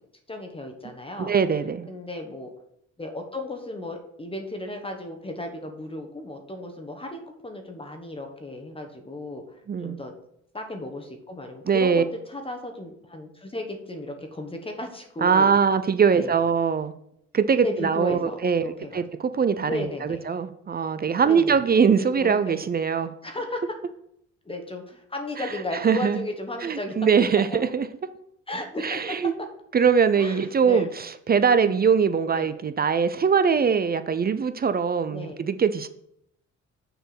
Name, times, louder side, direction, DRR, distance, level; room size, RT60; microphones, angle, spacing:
voice 1, 0.3-1.3 1.9-2.5 3.0-10.1 10.5-15.5 16.2-16.4 17.6-19.0 19.6-20.3 21.2-22.6 23.2-23.7 24.4-27.3 28.5-29.5 30.2-30.9 31.5-31.8 32.3-32.5 35.1-35.4, left 1 dB, 20° left, 4 dB, 1.2 m, -35 dB
voice 2, 1.2-1.9 9.7-10.0 11.7-12.0 15.2-16.9 17.3-23.1 25.8-26.2 26.6-27.9 28.8-29.3 29.7-35.9, right 6 dB, 30° right, 12 dB, 0.5 m, -22 dB
6.6 x 4.5 x 6.0 m, 0.74 s
cardioid pair, 90°, 30 cm